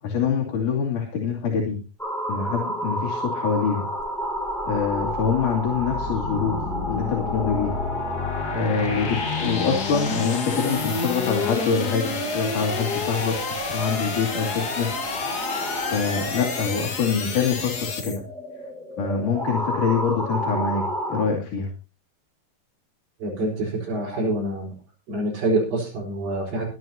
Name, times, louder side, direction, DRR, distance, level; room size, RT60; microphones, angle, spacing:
voice 1, 0.0-1.8 2.3-3.9 4.7-6.6 6.9-7.7 8.5-14.9 15.9-18.2 19.0-20.8 21.1-21.7, left 6 dB, 60° left, 1 dB, 4.2 m, -25 dB
sound 1, 2.0-21.3, equal, ahead, 5.1 m, -32 dB
sound 2, 4.0-18.2, left 4 dB, 35° left, 1.8 m, -30 dB
voice 2, 23.2-24.7 25.1-26.7, right 1 dB, 85° right, -4 dB, 6.4 m, -26 dB
23.5 x 10.5 x 2.9 m, 0.32 s
omnidirectional pair, 4.1 m